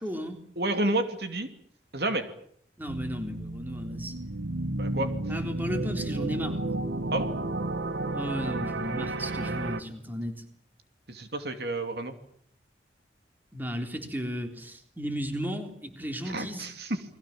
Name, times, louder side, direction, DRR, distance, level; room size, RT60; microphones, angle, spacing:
voice 1, 0.0-0.4 2.8-4.4 5.3-6.6 8.1-10.4 13.5-16.7, equal, 10° right, 5 dB, 3.7 m, -34 dB
voice 2, 0.6-1.5 1.9-2.2 4.8-5.1 7.1-7.3 11.1-12.1 16.2-17.0, right 2 dB, 60° right, 7 dB, 2.8 m, -30 dB
sound 1, 2.9-9.8, right 2 dB, 80° right, 1.8 m, -32 dB
29.5 x 21.5 x 7.5 m, 0.64 s
head